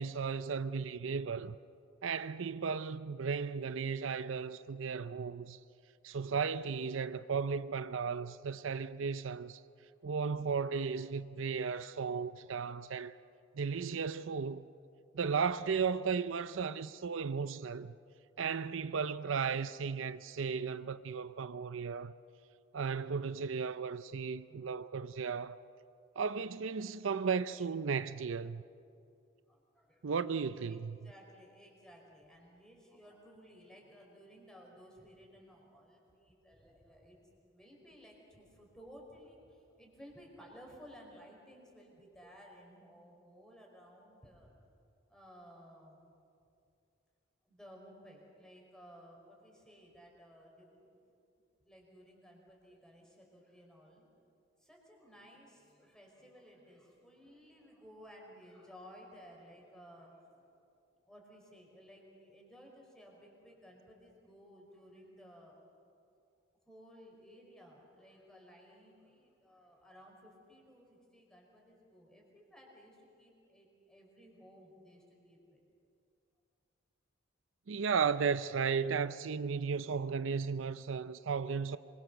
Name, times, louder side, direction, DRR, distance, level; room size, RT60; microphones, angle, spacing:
voice 1, 0.0-1.6 2.0-5.6 6.0-9.6 10.0-13.2 13.6-14.6 15.1-17.9 18.4-22.1 22.7-25.6 26.2-28.6 30.0-31.0 77.7-81.8, right 5 dB, 75° right, 0.5 m, -35 dB
voice 2, 29.5-30.2 30.7-37.2 37.5-44.5 45.1-46.1 47.4-51.0 51.6-54.1 54.6-65.6 66.6-75.6, equal, 5° left, 5.1 m, -57 dB
25.5 x 23.0 x 6.9 m
head